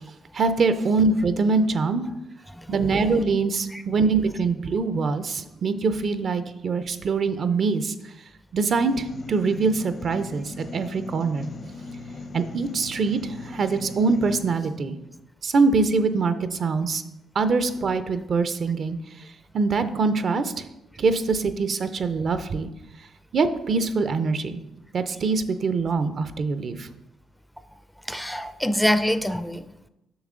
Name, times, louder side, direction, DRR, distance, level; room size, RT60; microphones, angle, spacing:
voice 1, 0.3-2.1 2.7-7.9 8.5-11.5 12.3-15.0 15.4-17.0 17.3-19.0 19.5-20.7 21.0-22.7 23.3-24.6 24.9-26.9, right 4 dB, 55° right, 10 dB, 0.6 m, -23 dB
voice 2, 2.5-3.2 3.7-3.8 28.1-29.7, left 1 dB, 5° left, 11 dB, 0.5 m, -26 dB
sound 1, 8.8-14.5, left 3 dB, 50° left, 0.8 m, -39 dB
7.0 x 6.0 x 3.7 m, 0.91 s
cardioid pair, 75°, 0 cm